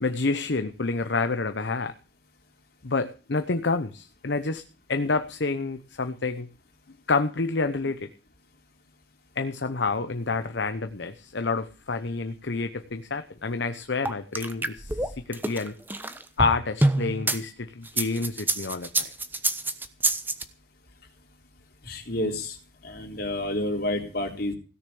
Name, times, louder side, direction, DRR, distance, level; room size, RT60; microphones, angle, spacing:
voice 1, 0.0-1.9 2.8-4.6 4.9-6.5 7.1-8.1 9.4-15.7 16.4-19.1, left 3 dB, 70° left, 9 dB, 0.9 m, -28 dB
sound 1, 14.1-17.4 17.9-20.4, right 2 dB, 10° right, 1.1 m, -26 dB
voice 2, 21.8-22.6 22.8-24.5, left 1 dB, 55° left, 2 dB, 3.8 m, -29 dB
17.0 x 6.8 x 8.5 m, 0.36 s
head